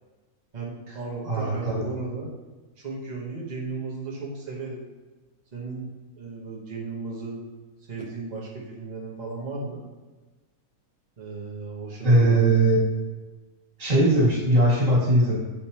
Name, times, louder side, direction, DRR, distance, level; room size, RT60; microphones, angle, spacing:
voice 1, 0.5-2.3 2.8-4.8 5.5-5.9 6.2-7.4 7.9-9.8 11.2-12.5, right 3 dB, 30° right, -4 dB, 1.0 m, -35 dB
voice 2, 1.3-1.8 12.0-12.8 13.8-15.4, right 1 dB, 50° right, -5 dB, 2.4 m, -20 dB
8.6 x 5.1 x 2.9 m, 1.3 s
omnidirectional pair, 1.7 m